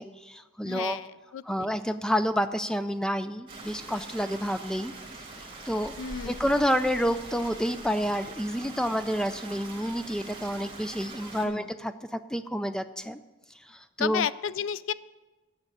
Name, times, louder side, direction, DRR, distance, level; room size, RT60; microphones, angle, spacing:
voice 1, 0.0-1.0 1.5-4.9 5.7-5.9 6.3-13.2 13.7-14.3, equal, 5° left, 10 dB, 0.3 m, -29 dB
voice 2, 0.6-1.7 6.0-6.4 11.4-11.7 14.0-14.9, left 8 dB, 80° left, 17 dB, 0.4 m, -32 dB
Stream, 3.5-11.5, right 2 dB, 25° right, 1.6 m, -43 dB
8.9 x 6.5 x 8.5 m, 1.2 s
head